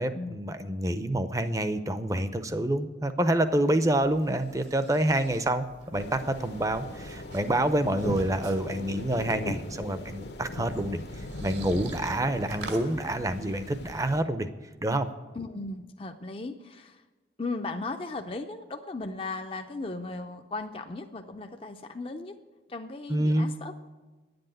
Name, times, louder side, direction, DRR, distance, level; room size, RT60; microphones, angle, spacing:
voice 1, 0.0-5.7 5.9-14.5 14.8-15.1 23.1-23.5, right 1 dB, 20° right, 10 dB, 0.6 m, -27 dB
sound 1, 3.3-12.9, right 3 dB, 80° right, 2.1 m, -48 dB
sound 2, 5.9-14.2, left 1 dB, 75° left, 1.1 m, -39 dB
voice 2, 15.4-17.0 17.4-22.3 22.7-23.9, left 3 dB, 30° left, 5 dB, 0.5 m, -37 dB
10.5 x 7.9 x 9.0 m, 1.3 s
head